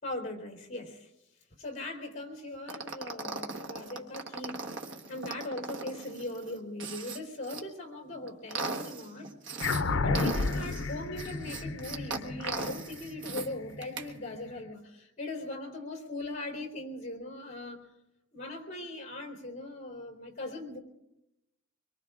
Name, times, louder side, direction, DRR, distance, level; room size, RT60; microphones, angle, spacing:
voice 1, 0.0-1.1 1.6-4.7 5.1-9.3 9.7-17.8 18.3-20.8, left 2 dB, 40° left, 2 dB, 3.9 m, -40 dB
sound 1, 2.7-7.6 8.1-9.8 10.1-13.5 13.8-14.1, right 3 dB, 65° right, 1.3 m, -38 dB
sound 2, 9.6-14.4, left 3 dB, 75° left, 0.7 m, -32 dB
25.5 x 22.5 x 2.5 m, 0.91 s
head